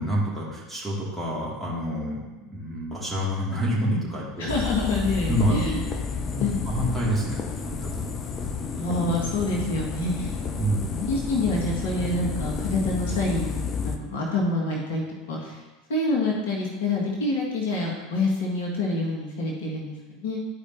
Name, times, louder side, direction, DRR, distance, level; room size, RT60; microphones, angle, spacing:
voice 1, 0.0-4.5 5.3-5.7 6.3-7.4 7.8-7.9 10.6-11.0, equal, 5° right, -7 dB, 2.7 m, -27 dB
voice 2, 4.4-5.8 6.4-6.9 8.6-10.4 11.0-15.6 15.9-20.4, left 2 dB, 60° left, -2 dB, 1.7 m, -27 dB
sound 1, 4.5-14.0, left 5 dB, 35° left, 0.7 m, -31 dB
12.5 x 4.9 x 2.9 m, 1.2 s
figure-of-eight pair, 75°, 0 cm